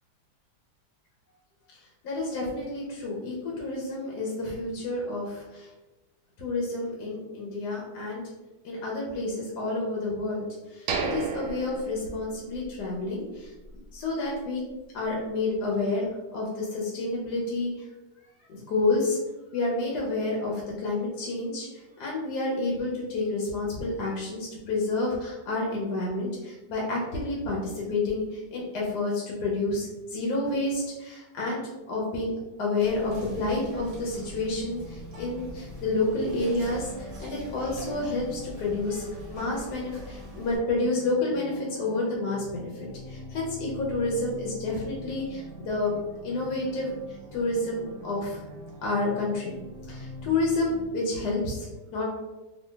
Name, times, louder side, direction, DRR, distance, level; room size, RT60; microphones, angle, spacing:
voice 1, 2.0-5.7 6.4-8.2 8.6-13.5 13.9-14.6 14.9-17.9 18.5-19.2 19.5-31.6 31.9-32.3 32.6-45.9 46.2-48.4 48.8-49.6 49.9-52.0, left 2 dB, 75° left, -3 dB, 1.3 m, -29 dB
sound 1, 10.9-12.8 13.1-13.2 13.7-13.9, right 5 dB, 80° right, 1.1 m, -33 dB
Whispering, 32.8-40.6, equal, 35° right, 0.6 m, -44 dB
sound 2, 33.1-50.9, left 1 dB, 55° right, 0.9 m, -44 dB
3.1 x 2.5 x 3.2 m, 1.1 s
omnidirectional pair, 1.8 m